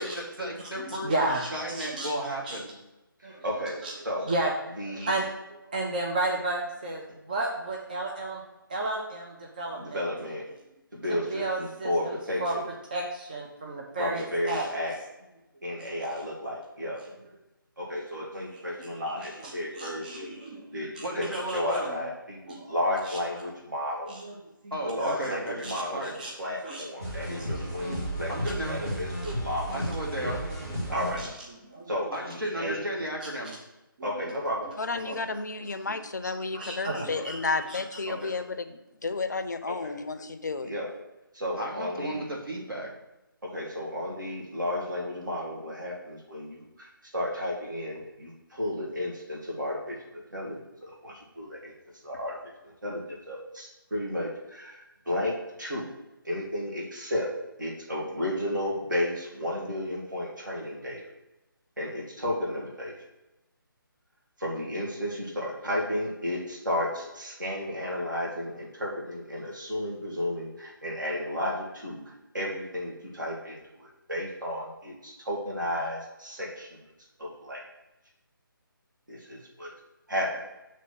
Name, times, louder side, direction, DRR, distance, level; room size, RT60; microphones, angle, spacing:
voice 1, 0.0-2.8 21.0-22.1 24.7-26.1 28.3-28.8 29.7-30.5 32.1-33.6 41.5-42.9, right 1 dB, 80° right, -3 dB, 1.9 m, -34 dB
voice 2, 0.9-2.1 2.5-2.6 3.2-3.4 3.8-3.9 4.3-4.5 4.9-5.3 5.7-7.0 7.3-8.4 8.7-10.0 11.3-11.9 12.4-12.5 12.9-14.7 19.2-19.5 19.8-20.6 20.9-21.0 22.6-22.7 24.1-24.3 25.0-25.1 25.6-26.3 26.6-28.1 29.2-29.3 30.8-31.3 31.7-31.9 34.0-34.1 36.5-37.4 37.7-37.8, right 2 dB, 25° right, -1 dB, 0.4 m, -32 dB
voice 3, 3.2-4.3 4.8-5.1 9.7-10.4 10.9-12.7 14.0-15.0 15.6-17.0 17.8-20.4 20.7-20.9 21.2-24.1 24.8-26.1 26.4-28.3 28.7-29.8 30.2-30.4 30.9-31.2 31.9-32.8 34.0-34.7 35.0-35.2 37.1-37.3 38.1-38.3 39.7-39.9 40.6-40.9 41.3-42.2 43.4-51.7 52.0-55.9 56.2-57.3 57.6-61.0 61.8-62.9 64.4-72.0 72.3-76.8 77.2-77.6 79.1-79.7 80.1-80.4, left 1 dB, 60° right, -3 dB, 1.9 m, -33 dB
sound 1, 27.0-31.2, equal, 40° right, 1.9 m, -33 dB
voice 4, 34.8-40.7, left 3 dB, 50° left, 9 dB, 0.5 m, -32 dB
6.8 x 3.1 x 5.8 m, 0.98 s
figure-of-eight pair, 150°, 12 cm